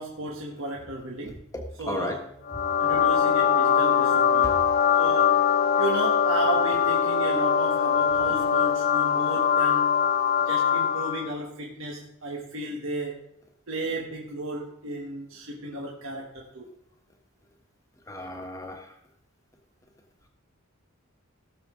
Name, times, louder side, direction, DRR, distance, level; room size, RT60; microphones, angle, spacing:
voice 1, 0.0-1.4 1.8-2.2 2.8-4.6 5.0-5.4 5.8-10.0 10.4-13.2 13.7-16.7, right 1 dB, 70° right, -1 dB, 1.5 m, -34 dB
voice 2, 1.5-2.2 3.9-4.0 4.4-4.6 18.1-18.9, left 1 dB, 15° left, 3 dB, 1.4 m, -34 dB
sound 1, 2.5-11.3, left 8 dB, 45° left, 0.5 m, -22 dB
17.5 x 6.9 x 3.8 m, 0.79 s
head